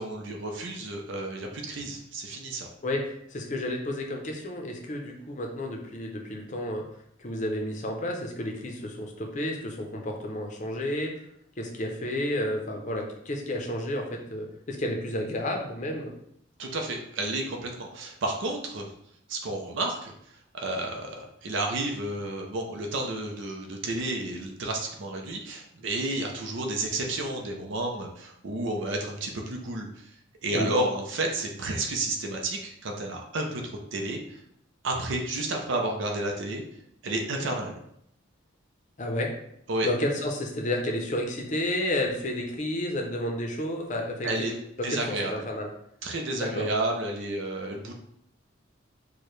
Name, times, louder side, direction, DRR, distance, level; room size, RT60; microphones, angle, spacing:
voice 1, 0.0-2.7 16.6-18.9 19.3-20.1 20.5-30.0 30.4-33.6 33.9-34.4 34.8-36.6 37.0-37.7 39.7-39.9 44.2-44.5 44.8-45.4 46.0-48.1, right 2 dB, 70° right, 1 dB, 0.5 m, -31 dB
voice 2, 2.8-6.8 7.2-11.1 11.6-16.1 30.5-30.7 37.4-37.5 39.0-39.3 39.8-45.7 46.3-46.7, left 1 dB, 40° left, 1 dB, 0.5 m, -31 dB
4.5 x 2.2 x 3.1 m, 0.74 s
head